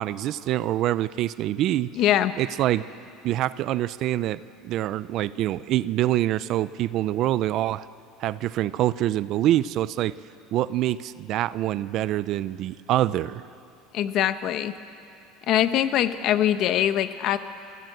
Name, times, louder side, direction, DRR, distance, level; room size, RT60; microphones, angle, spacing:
voice 1, 0.0-1.9 2.4-2.9 3.2-7.9 8.2-10.1 10.5-13.4, right 13 dB, 45° right, 17 dB, 0.5 m, -25 dB
voice 2, 2.0-2.3 13.9-14.7 15.5-17.4, left 11 dB, 45° left, 11 dB, 1.0 m, -22 dB
29.5 x 15.0 x 7.9 m, 2.5 s
cardioid pair, 155°, 0 cm